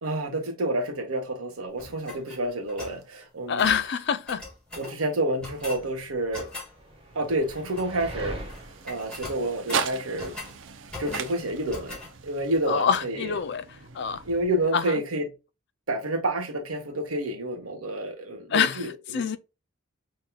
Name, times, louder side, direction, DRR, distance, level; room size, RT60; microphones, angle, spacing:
voice 1, 0.0-3.7 4.8-6.5 7.1-8.4 8.8-10.4 11.0-13.4 14.2-15.3 15.9-19.4, right 1 dB, 90° right, 1.2 m, -29 dB
sound 1, 1.8-3.0 3.6-3.9 4.3-4.9 5.4-5.8 6.3-6.7 7.5-8.1 8.4-8.6 8.9-10.5 10.9-11.4 11.7-12.1, left 2 dB, 5° left, 1.7 m, -40 dB
voice 2, 3.5-4.5 4.9-5.0 12.7-14.2 14.7-14.9 18.5-19.4, left 7 dB, 55° left, 0.4 m, -26 dB
sound 2, 5.6-10.5, right 1 dB, 25° right, 0.9 m, -42 dB
sound 3, 6.7-15.0, right 6 dB, 60° right, 0.5 m, -38 dB
5.8 x 2.9 x 2.3 m
head